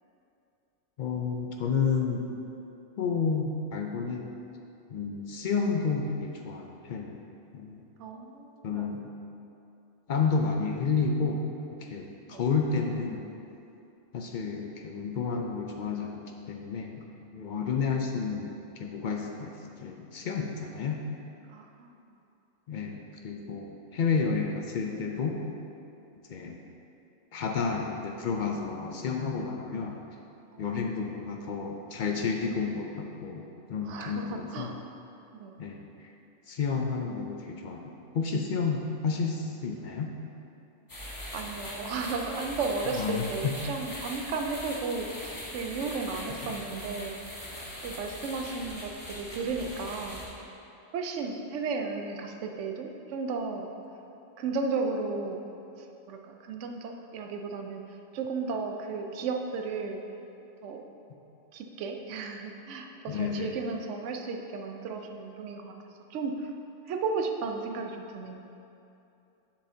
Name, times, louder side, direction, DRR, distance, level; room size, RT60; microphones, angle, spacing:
voice 1, 1.0-2.2 3.0-4.3 4.9-7.2 7.5-7.8 8.6-9.0 10.1-11.4 11.8-13.3 14.1-17.0 17.3-19.5 19.8-21.0 22.7-25.4 26.3-26.6 27.3-30.0 30.6-33.4 33.7-34.7 35.6-35.8 36.5-40.1 43.0-43.3 46.4-46.6 63.1-63.6, left 5 dB, 65° left, 2 dB, 0.4 m, -31 dB
voice 2, 8.0-8.9 12.3-12.4 17.6-17.7 21.5-21.9 30.5-30.7 33.8-34.8 35.3-35.5 41.3-47.1 47.8-50.2 50.9-53.7 54.4-55.4 55.8-57.8 58.1-60.0 60.6-60.8 61.5-65.7 66.1-66.5 66.9-68.5, right 4 dB, 70° right, 4 dB, 0.9 m, -34 dB
sound 1, 40.9-50.3, equal, 15° left, 1.0 m, -41 dB
7.3 x 7.2 x 2.7 m, 2.8 s
omnidirectional pair, 1.3 m